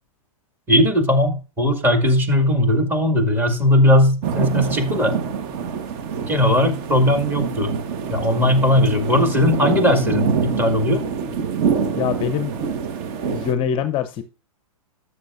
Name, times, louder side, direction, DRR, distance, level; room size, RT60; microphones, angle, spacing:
voice 1, 0.7-5.2 6.3-7.7 8.1-11.0, left 1 dB, 10° right, 2.1 m, -18 dB
sound 1, 4.2-13.5, right 6 dB, 40° right, 1.3 m, -25 dB
voice 2, 11.9-12.5 13.3-14.2, left 8 dB, 30° left, 0.7 m, -23 dB
13.0 x 8.2 x 2.5 m
hypercardioid pair, 115°, 18 cm